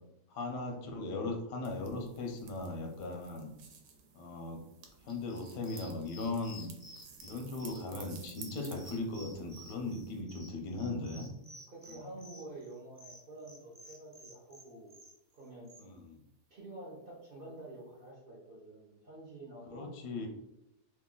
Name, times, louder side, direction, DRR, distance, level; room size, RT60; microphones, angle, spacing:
voice 1, 0.3-3.5 4.1-4.6 5.0-6.7 7.2-11.3 11.9-12.1 15.8-16.2 19.7-20.3, left 2 dB, 90° left, 3 dB, 1.3 m, -38 dB
sound 1, 1.6-10.2, right 5 dB, 85° right, 1.2 m, -55 dB
sound 2, 5.1-15.8, equal, 5° left, 0.8 m, -53 dB
voice 2, 11.7-15.0 15.3-15.7 16.5-19.9, right 2 dB, 40° right, -4 dB, 0.9 m, -48 dB
3.2 x 2.5 x 3.8 m, 0.84 s
omnidirectional pair, 1.8 m